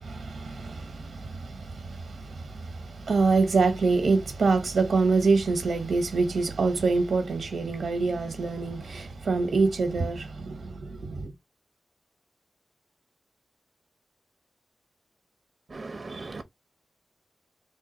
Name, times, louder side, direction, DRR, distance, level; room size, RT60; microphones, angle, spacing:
voice 1, 0.0-11.3, right 4 dB, 85° right, 1.0 m, -26 dB
voice 2, 15.7-16.4, right 3 dB, 55° right, 0.7 m, -38 dB
3.4 x 2.2 x 4.3 m
cardioid pair, 45°, 0 cm